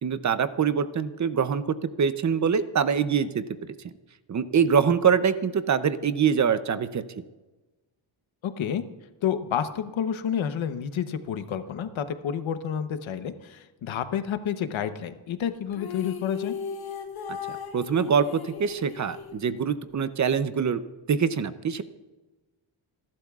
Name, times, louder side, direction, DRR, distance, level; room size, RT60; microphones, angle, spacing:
voice 1, 0.0-3.4 4.3-7.0 17.3-17.4 17.7-20.8 21.1-21.8, right 7 dB, 35° right, 12 dB, 0.6 m, -24 dB
voice 2, 8.4-8.8 9.2-16.6, left 8 dB, 75° left, 9 dB, 1.0 m, -29 dB
sound 1, 15.7-20.0, left 7 dB, 50° left, 1.3 m, -37 dB
28.0 x 12.0 x 2.4 m, 1.2 s
wide cardioid pair, 135°, 47 cm